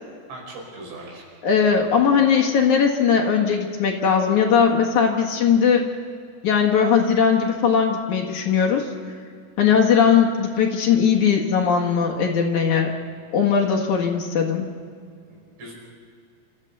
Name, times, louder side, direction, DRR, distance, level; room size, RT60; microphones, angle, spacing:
voice 1, 0.3-1.3 9.6-9.7 15.3-15.7, right 2 dB, 80° right, -1 dB, 7.4 m, -39 dB
voice 2, 1.4-5.9 6.4-8.9 9.6-12.9 13.3-14.7, left 6 dB, 55° left, 0 dB, 2.4 m, -19 dB
27.5 x 14.0 x 7.0 m, 2.2 s
omnidirectional pair, 5.1 m